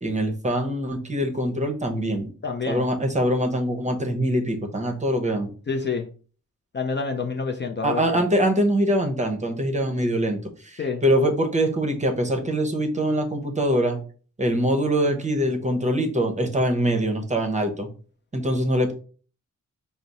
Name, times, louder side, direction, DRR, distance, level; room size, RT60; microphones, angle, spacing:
voice 1, 0.0-2.3 2.7-5.5 7.8-14.0 14.4-17.9 18.3-18.9, equal, 20° right, 4 dB, 0.8 m, -23 dB
voice 2, 2.4-2.9 5.7-6.1 6.7-8.2 10.8-11.0, left 4 dB, 35° left, 3 dB, 0.5 m, -28 dB
4.9 x 2.0 x 4.0 m, 0.40 s
wide cardioid pair, 125°, 32 cm